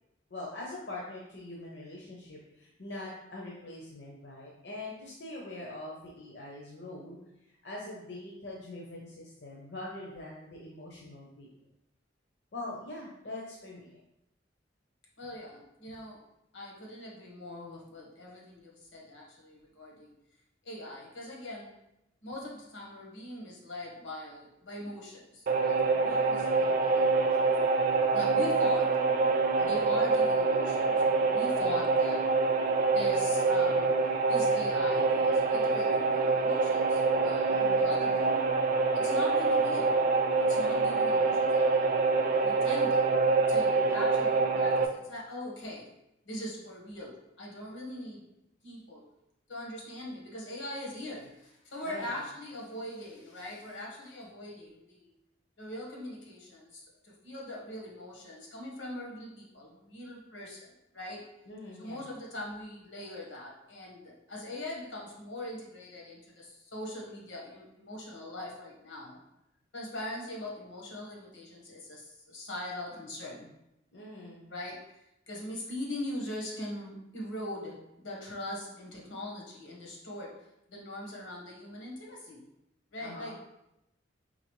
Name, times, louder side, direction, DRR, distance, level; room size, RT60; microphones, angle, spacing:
voice 1, 0.3-11.5 12.5-14.0 29.6-29.9 31.6-31.9 37.5-37.9 51.8-52.2 61.5-62.1 73.9-74.5 83.0-83.4, left 2 dB, 65° left, -3 dB, 0.7 m, -43 dB
voice 2, 15.2-16.2 16.5-20.1 20.6-21.7 22.2-27.5 28.1-28.9 29.7-32.2 32.9-33.9 34.3-38.5 38.9-40.0 40.4-41.9 42.3-43.0 43.5-45.9 46.2-48.3 48.6-49.1 49.5-55.1 55.6-60.7 60.9-61.3 61.8-69.2 69.7-73.5 74.5-80.3 80.7-82.4 82.9-83.3, left 1 dB, 85° left, -2 dB, 1.3 m, -41 dB
sound 1, 25.5-44.8, right 4 dB, 45° right, 0.4 m, -26 dB
4.0 x 3.9 x 3.1 m, 0.87 s
head